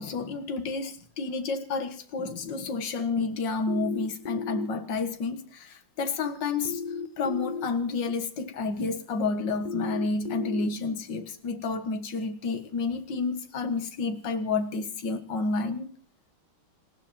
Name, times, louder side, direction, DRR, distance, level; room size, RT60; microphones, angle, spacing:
voice 1, 0.0-6.8 7.2-15.9, left 4 dB, 60° left, 8 dB, 2.3 m, -30 dB
sound 1, 3.7-4.7 6.6-7.7 9.6-10.7, left 5 dB, 25° left, 1.5 m, -34 dB
19.5 x 17.0 x 4.3 m, 0.43 s
omnidirectional pair, 2.3 m